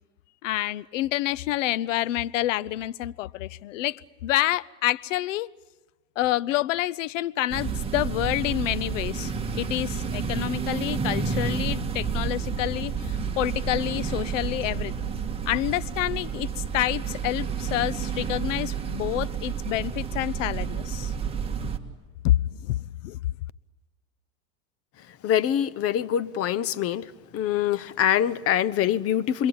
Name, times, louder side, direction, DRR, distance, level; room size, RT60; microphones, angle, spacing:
voice 1, 0.4-5.5 6.2-15.1 15.5-21.1 22.2-23.2, left 15 dB, 75° left, 20 dB, 0.8 m, -28 dB
sound 1, 7.5-21.8, right 6 dB, 15° right, 2.2 m, -30 dB
voice 2, 25.2-27.1 27.3-29.5, left 10 dB, 35° left, 15 dB, 1.0 m, -24 dB
29.0 x 22.5 x 8.9 m, 1.2 s
hypercardioid pair, 110°, 38 cm